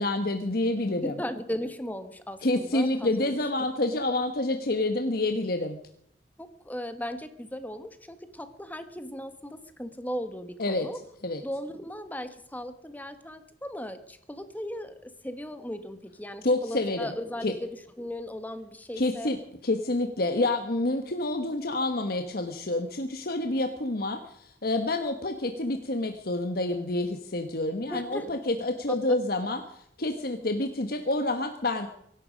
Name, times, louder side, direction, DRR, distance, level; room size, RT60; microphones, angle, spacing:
voice 1, 0.0-1.2 2.4-5.8 10.6-10.9 11.2-11.4 16.4-17.1 17.4-17.5 18.9-31.9, left 2 dB, 55° left, 6 dB, 1.2 m, -28 dB
voice 2, 1.0-3.3 6.4-11.0 11.4-17.7 18.0-19.3 27.9-28.4, equal, 10° left, 10 dB, 1.2 m, -37 dB
24.0 x 11.5 x 5.1 m, 0.73 s
head